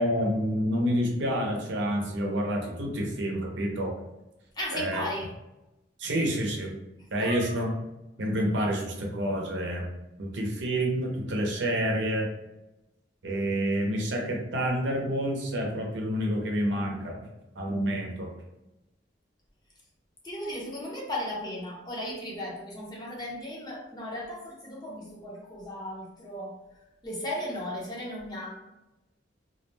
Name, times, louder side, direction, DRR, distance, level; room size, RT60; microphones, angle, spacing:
voice 1, 0.0-3.9 4.7-5.0 6.0-6.7 7.1-7.7 8.2-9.9 10.2-12.3 13.2-17.2 17.6-18.3, equal, 80° right, 0 dB, 0.6 m, -28 dB
voice 2, 4.6-5.3 7.0-7.6 20.2-26.5 27.0-28.6, left 1 dB, 25° left, -4 dB, 0.7 m, -36 dB
2.4 x 2.1 x 3.2 m, 0.97 s
head